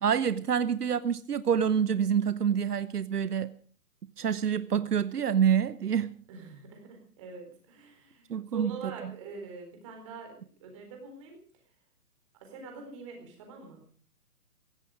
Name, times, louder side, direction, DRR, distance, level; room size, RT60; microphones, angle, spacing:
voice 1, 0.0-3.5 4.2-6.2 8.3-8.7, right 8 dB, 75° right, 1.0 m, -27 dB
voice 2, 6.3-10.3 10.6-11.4 12.4-13.8, right 4 dB, 20° right, 4.2 m, -44 dB
17.0 x 16.5 x 5.0 m
hypercardioid pair, 175°, 47 cm